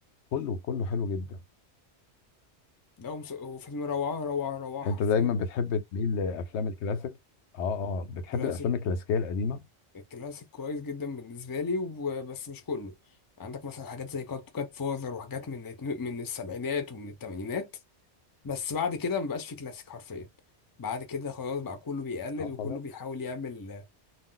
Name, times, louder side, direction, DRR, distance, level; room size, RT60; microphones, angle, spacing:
voice 1, 0.3-1.4 4.8-7.1 7.5-9.6 22.4-22.8, left 5 dB, 90° left, 0.9 m, -29 dB
voice 2, 3.0-5.4 8.3-8.7 10.1-12.9 13.4-17.7 18.4-20.3 20.8-23.9, left 5 dB, 30° left, 0.4 m, -34 dB
2.4 x 2.1 x 3.7 m
omnidirectional pair, 1.1 m